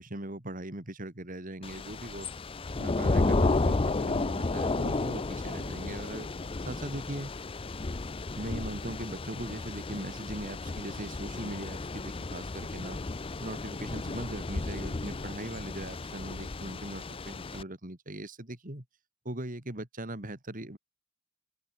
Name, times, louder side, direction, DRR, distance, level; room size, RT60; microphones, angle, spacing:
voice 1, 0.0-2.3 2.7-6.3 6.7-7.3 8.4-13.0 13.4-18.8 19.2-20.8, right 1 dB, 40° right, 3.0 m, -40 dB
Thunder / Rain, 1.6-17.6, left 3 dB, 25° left, 0.5 m, -33 dB
head